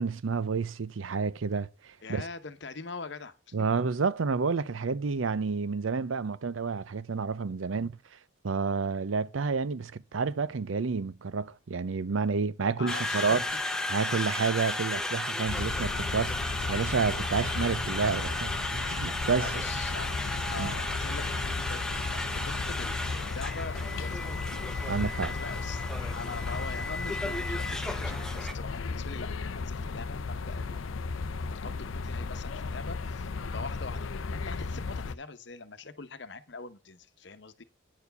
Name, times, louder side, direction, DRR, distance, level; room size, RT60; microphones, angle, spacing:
voice 1, 0.0-2.3 3.5-8.0 8.4-13.4 13.9-16.4 16.7-19.5 20.6-20.7 24.9-25.3, right 5 dB, 85° right, 0.6 m, -30 dB
voice 2, 2.0-4.1 12.8-13.4 19.4-20.1 20.5-25.0 25.3-25.8 26.1-30.8 31.2-37.6, left 4 dB, 60° left, 0.9 m, -43 dB
Conversation, 12.9-28.5, left 1 dB, 5° left, 0.7 m, -34 dB
sound 1, 15.5-35.1, left 4 dB, 85° left, 0.6 m, -35 dB
9.9 x 4.6 x 6.7 m
head